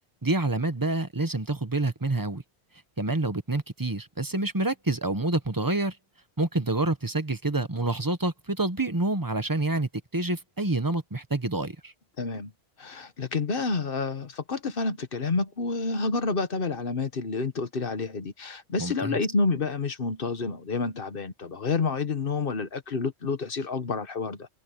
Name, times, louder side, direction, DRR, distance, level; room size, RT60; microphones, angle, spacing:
voice 1, 0.2-2.4 3.0-6.0 6.4-11.9 18.8-19.2, right 2 dB, 20° right, 1.1 m, -27 dB
voice 2, 12.2-12.5 12.8-24.5, left 4 dB, 55° left, 1.4 m, -29 dB
omnidirectional pair, 1.1 m